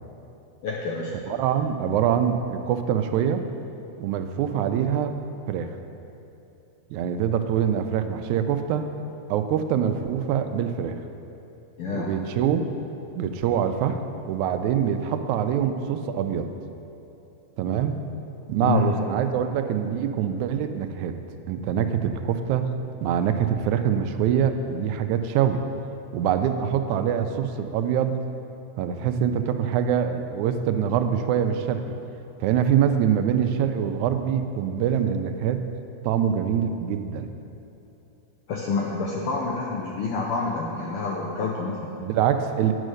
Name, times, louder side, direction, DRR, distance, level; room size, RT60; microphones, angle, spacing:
voice 1, 0.6-1.1 11.8-12.1 18.6-18.9 38.5-41.9, left 4 dB, 75° left, -2 dB, 1.3 m, -27 dB
voice 2, 1.3-3.4 4.0-5.2 5.5-5.7 6.9-8.9 9.3-11.0 11.9-12.6 13.2-14.0 14.3-16.5 17.6-18.0 18.5-21.2 21.5-22.7 23.0-25.6 26.1-28.2 28.8-31.9 32.4-35.6 36.0-37.3 42.0-42.7, right 8 dB, 90° right, 8 dB, 2.0 m, -24 dB
9.2 x 6.3 x 6.4 m, 2.9 s
omnidirectional pair, 3.3 m